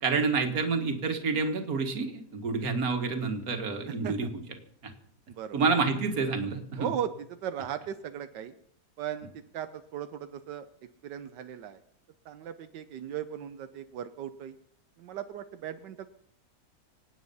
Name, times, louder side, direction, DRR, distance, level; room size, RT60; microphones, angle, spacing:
voice 1, 0.0-4.4 4.8-4.9 5.5-6.9, right 4 dB, 55° right, 6 dB, 2.1 m, -28 dB
voice 2, 5.3-5.6 6.8-8.5 9.0-9.3 9.5-10.6 11.0-11.8 12.3-14.5 15.0-16.1, right 9 dB, 90° right, 9 dB, 1.4 m, -37 dB
26.0 x 8.9 x 5.5 m, 0.66 s
omnidirectional pair, 1.8 m